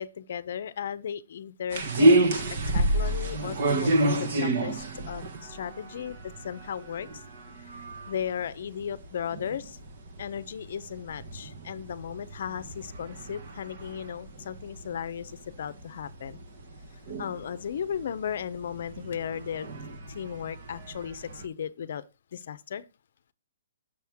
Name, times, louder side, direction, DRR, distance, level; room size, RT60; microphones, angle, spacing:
voice 1, 0.0-7.2 7.6-9.8 10.2-16.4 17.2-19.7 20.1-22.0 22.3-22.8, left 8 dB, 55° left, 0.6 m, -36 dB
sound 1, 1.7-21.5, right 1 dB, 45° right, 1.2 m, -30 dB
6.4 x 6.2 x 3.5 m
hypercardioid pair, 165°, 0 cm